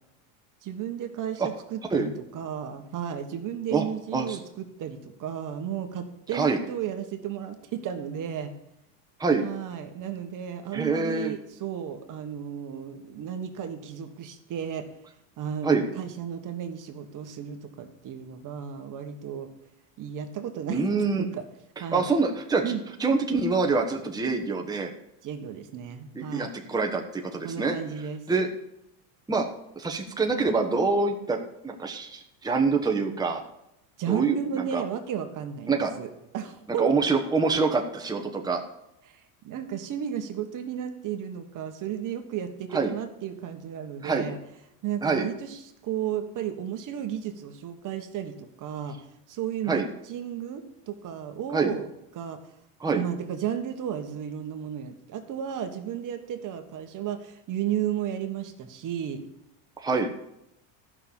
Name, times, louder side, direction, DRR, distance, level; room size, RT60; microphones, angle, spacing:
voice 1, 0.6-1.4 1.7-8.5 9.4-14.9 15.4-19.5 20.0-20.8 21.2-21.4 21.8-22.1 22.6-22.8 25.2-26.5 27.4-28.2 34.0-36.9 39.1-44.4 44.8-49.0 49.3-51.9 52.1-52.4 52.9-59.2, right 9 dB, 45° right, 7 dB, 1.4 m, -33 dB
voice 2, 10.7-11.3 15.6-15.8 20.7-21.3 21.8-22.7 23.0-24.9 26.1-27.7 28.3-28.5 29.3-29.4 29.7-33.4 34.1-34.8 35.7-36.0 36.8-38.6 42.7-42.9 44.0-44.3 45.0-45.3 49.7-49.9 51.5-51.7 52.8-53.0 59.8-60.1, right 4 dB, 10° right, 2 dB, 1.2 m, -25 dB
12.5 x 6.1 x 7.1 m, 0.82 s
supercardioid pair, 120°, 44 cm